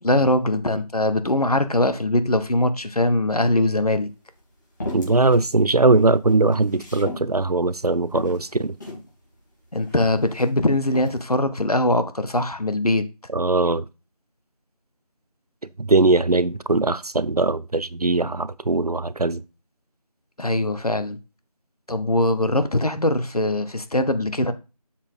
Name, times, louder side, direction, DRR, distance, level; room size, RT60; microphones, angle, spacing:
voice 1, 0.0-4.1 9.7-13.0 20.4-21.2 21.9-24.5, left 1 dB, 70° left, 1.1 m, -21 dB
sound 1, 4.0-4.1 4.8-5.5 5.9-7.3 7.7-7.8 8.1-9.1 9.8-10.5 10.8-11.2, left 2 dB, 30° left, 3.5 m, -35 dB
voice 2, 4.9-8.8 13.3-13.8 15.8-19.4, right 3 dB, 70° right, 0.6 m, -20 dB
7.1 x 5.1 x 4.0 m
figure-of-eight pair, 175°, 20 cm